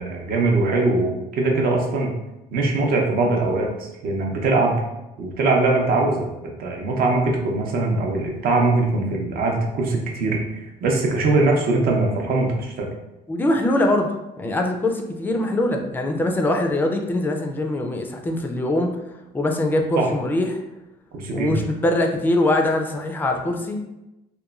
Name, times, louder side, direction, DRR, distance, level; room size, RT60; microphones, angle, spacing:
voice 1, 0.0-2.1 2.5-4.8 5.2-6.3 6.6-10.4 10.8-12.9 20.0-20.1 21.1-21.6, right 2 dB, 60° right, 0 dB, 0.6 m, -21 dB
voice 2, 13.3-14.1 14.4-18.9 19.3-20.6 21.3-23.8, left 1 dB, 10° left, 3 dB, 0.3 m, -22 dB
2.9 x 2.2 x 2.4 m, 0.95 s
cardioid pair, 110°, 17 cm